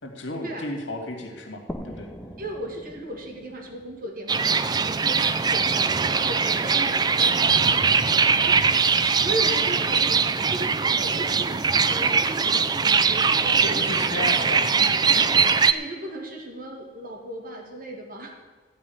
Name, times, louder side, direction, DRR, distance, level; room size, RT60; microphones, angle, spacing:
voice 1, 0.0-2.1 13.6-14.7 15.1-15.2, left 1 dB, 85° left, 3 dB, 2.4 m, -33 dB
sound 1, 1.7-5.2, equal, 5° left, 0.8 m, -42 dB
voice 2, 2.4-8.6 8.9-14.6 15.7-18.3, right 1 dB, 50° right, 2 dB, 2.2 m, -36 dB
sound 2, 4.3-15.7, right 5 dB, 20° right, 0.4 m, -21 dB
14.0 x 5.5 x 9.5 m, 1.4 s
head